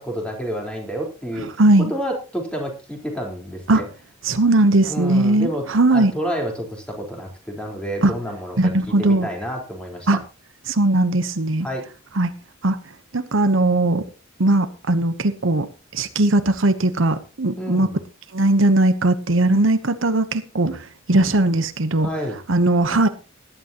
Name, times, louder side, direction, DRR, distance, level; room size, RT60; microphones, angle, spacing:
voice 1, 0.0-1.6 1.9-3.9 4.9-5.6 5.9-8.7 9.0-10.1 11.6-11.9 17.6-18.0 22.0-22.4, equal, 5° left, 0 dB, 4.1 m, -29 dB
voice 2, 1.4-1.9 3.7-3.8 4.2-6.1 8.0-8.1 8.6-9.3 10.1-10.2 10.7-11.7 12.2-12.3 12.6-12.8 13.1-14.0 14.4-15.7 15.9-17.9 18.3-22.1 22.5-23.1, right 2 dB, 70° right, 10 dB, 1.0 m, -19 dB
18.0 x 11.0 x 3.0 m, 0.32 s
head